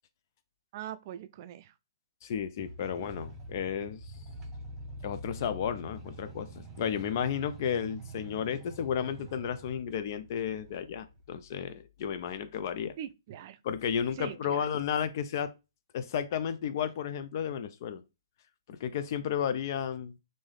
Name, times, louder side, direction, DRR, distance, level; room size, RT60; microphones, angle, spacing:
voice 1, 0.7-1.7 2.9-3.1 13.0-13.6 14.2-14.7, right 10 dB, 45° right, 0.3 m, -42 dB
voice 2, 2.2-4.1 5.0-13.0 13.6-15.5 15.9-18.0 18.7-20.1, left 8 dB, 50° left, 0.3 m, -33 dB
sound 1, 2.6-11.5, right 2 dB, 20° right, 0.7 m, -46 dB
3.6 x 2.6 x 3.2 m
hypercardioid pair, 130°, 2 cm